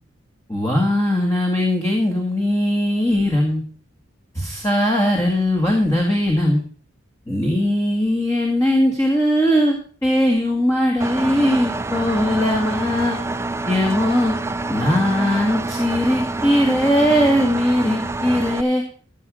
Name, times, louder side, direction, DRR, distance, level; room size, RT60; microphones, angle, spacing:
voice 1, 0.5-3.6 4.3-6.6 7.3-13.2 13.7-14.3 14.7-18.8, left 1 dB, 15° left, 0 dB, 1.9 m, -19 dB
Engine, 11.0-18.6, right 2 dB, 15° right, 0.4 m, -27 dB
13.5 x 7.6 x 5.1 m, 0.43 s
head